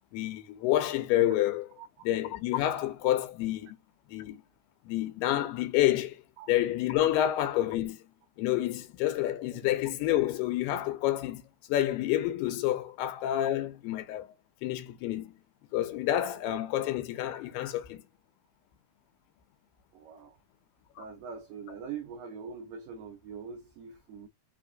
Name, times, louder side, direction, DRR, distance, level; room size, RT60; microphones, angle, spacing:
voice 1, 0.1-1.7 2.0-3.8 4.1-4.4 4.9-6.2 6.5-8.0 8.4-11.4 11.7-14.3 14.6-15.3 15.7-18.0 21.0-21.1, left 13 dB, 85° left, 2.7 m, -29 dB
voice 2, 19.9-20.4 21.0-24.3, right 6 dB, 85° right, 1.9 m, -43 dB
5.8 x 2.9 x 2.5 m
omnidirectional pair, 4.7 m